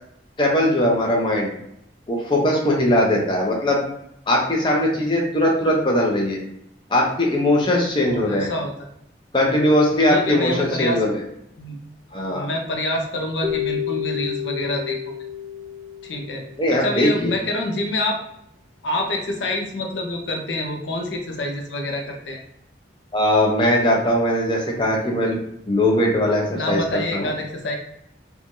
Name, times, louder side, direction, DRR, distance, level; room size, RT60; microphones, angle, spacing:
voice 1, 0.4-1.5 2.1-3.8 4.3-6.4 6.9-8.5 9.3-11.2 12.1-12.5 16.6-17.4 23.1-25.4 25.7-27.3, left 1 dB, 25° left, -2 dB, 0.5 m, -20 dB
voice 2, 8.0-8.7 10.1-11.0 11.6-11.8 12.3-15.1 16.0-18.2 18.8-22.4 26.5-27.8, left 1 dB, 80° left, 2 dB, 0.5 m, -27 dB
Keyboard (musical), 13.4-16.7, left 9 dB, 45° right, 0.4 m, -30 dB
3.1 x 2.3 x 2.6 m, 0.78 s
head